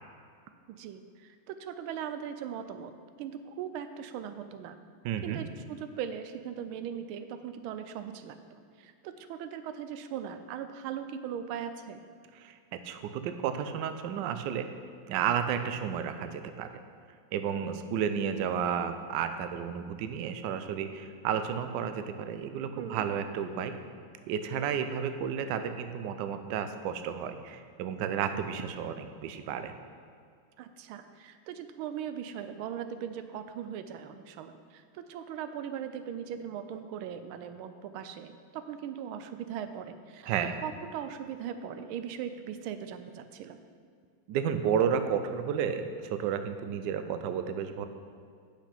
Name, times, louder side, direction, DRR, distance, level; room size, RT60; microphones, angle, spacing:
voice 1, 0.7-2.9 3.2-4.8 5.2-8.4 8.8-12.0 22.7-23.0 30.6-40.3 40.6-43.6, right 8 dB, 90° right, 9 dB, 1.4 m, -39 dB
voice 2, 5.0-5.4 12.4-14.7 15.1-16.7 17.3-23.7 24.3-29.7 40.2-40.6 44.3-47.9, right 8 dB, 70° right, 9 dB, 1.1 m, -32 dB
8.6 x 6.0 x 5.8 m, 2.2 s
omnidirectional pair, 2.2 m